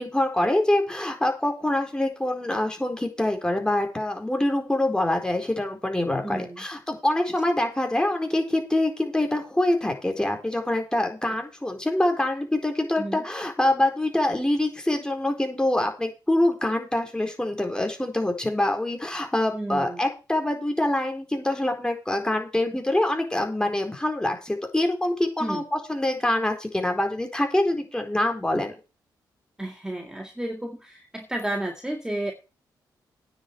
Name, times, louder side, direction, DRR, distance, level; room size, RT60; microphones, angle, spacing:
voice 1, 0.0-28.8, left 1 dB, 10° left, 4 dB, 4.4 m, -25 dB
voice 2, 6.2-6.6 13.0-13.2 19.5-20.0 25.4-25.6 29.6-32.3, right 1 dB, 10° right, 4 dB, 2.0 m, -32 dB
9.6 x 6.5 x 8.0 m, 0.30 s
cardioid pair, 80°, 8 cm